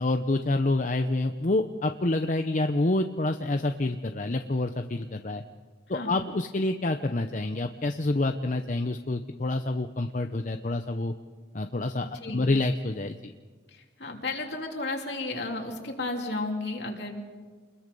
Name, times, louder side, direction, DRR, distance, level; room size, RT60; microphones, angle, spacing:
voice 1, 0.0-5.4 5.9-11.1 11.5-13.3, left 2 dB, 40° left, 7 dB, 0.7 m, -27 dB
voice 2, 5.9-6.3 12.2-12.5 13.7-17.2, left 2 dB, 65° left, 2 dB, 3.1 m, -33 dB
28.5 x 21.5 x 5.4 m, 1.5 s
head